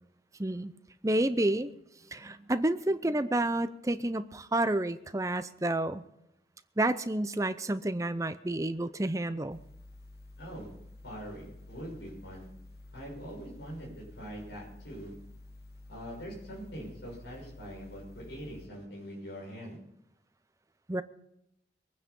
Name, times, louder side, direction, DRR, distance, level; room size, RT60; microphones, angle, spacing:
voice 1, 0.4-0.7 1.0-1.7 2.1-6.0 6.8-9.6 20.9-21.0, right 1 dB, 15° right, 12 dB, 0.6 m, -29 dB
sound 1, 9.5-18.7, left 2 dB, 60° left, 1.1 m, -51 dB
voice 2, 10.4-10.7 11.0-12.5 12.9-15.1 15.9-19.8, equal, 80° left, -4 dB, 6.6 m, -43 dB
23.0 x 9.5 x 5.4 m, 0.81 s
head